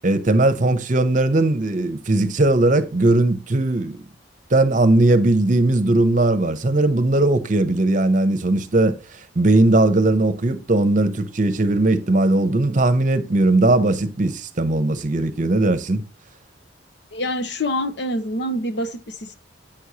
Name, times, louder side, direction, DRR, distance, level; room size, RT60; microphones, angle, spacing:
voice 1, 0.0-4.0 4.5-16.0, right 2 dB, 40° right, 0.8 m, -18 dB
voice 2, 17.1-19.3, left 1 dB, 60° left, 0.9 m, -26 dB
8.8 x 6.3 x 2.9 m
head